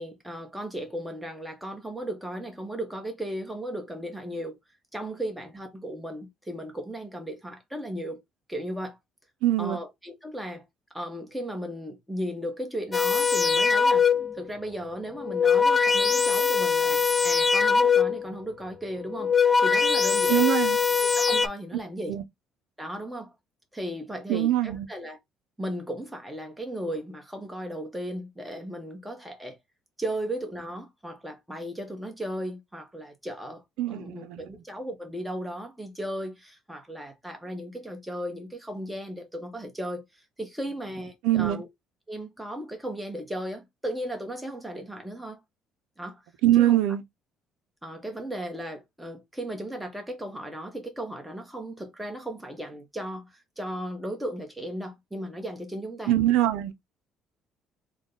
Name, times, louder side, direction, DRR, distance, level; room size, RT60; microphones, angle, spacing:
voice 1, 0.0-4.6 4.9-8.2 8.5-9.0 9.6-10.6 10.9-14.1 14.3-20.4 21.0-22.2 22.8-23.3 23.7-25.2 25.6-29.6 30.0-33.6 33.9-40.0 40.4-41.7 42.1-45.4 46.0-46.2 46.6-46.8 47.8-56.1, equal, 5° right, 1.1 m, -36 dB
voice 2, 9.4-9.8 20.3-20.8 22.1-22.2 24.3-24.9 33.8-34.5 41.2-41.6 46.4-47.0 56.1-56.7, right 13 dB, 90° right, 0.5 m, -23 dB
sound 1, 12.9-14.4 15.1-18.3 19.0-21.5, left 5 dB, 20° left, 0.3 m, -22 dB
3.6 x 2.2 x 3.7 m
cardioid pair, 120°, 0 cm